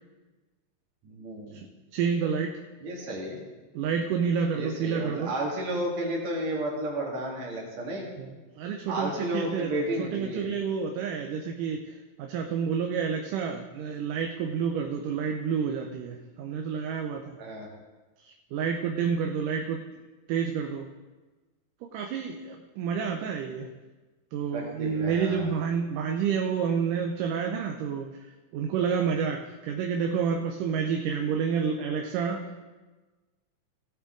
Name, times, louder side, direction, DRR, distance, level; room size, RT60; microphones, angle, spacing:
voice 1, 1.0-1.6 2.8-3.4 4.5-8.1 8.9-10.5 17.4-17.7 24.5-25.5, right 1 dB, 55° right, -1 dB, 3.2 m, -32 dB
voice 2, 1.9-2.6 3.7-5.3 8.2-17.3 18.2-19.8 20.3-20.9 21.8-23.7 24.3-32.4, right 6 dB, 75° right, 3 dB, 2.2 m, -29 dB
17.0 x 8.4 x 3.8 m, 1.2 s
omnidirectional pair, 3.9 m